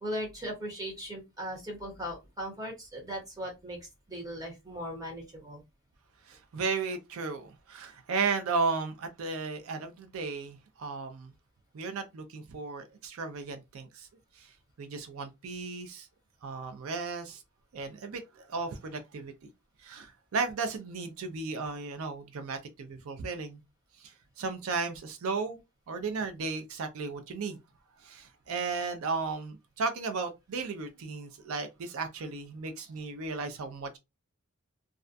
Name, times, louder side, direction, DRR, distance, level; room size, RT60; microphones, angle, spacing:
voice 1, 0.0-5.6, equal, 15° right, 0.9 m, -38 dB
voice 2, 6.3-11.3 11.7-14.1 14.3-16.1 16.4-17.4 17.7-19.3 19.8-23.6 24.0-25.6 25.9-27.6 28.0-34.0, right 4 dB, 75° right, 0.4 m, -35 dB
2.3 x 2.2 x 2.5 m
head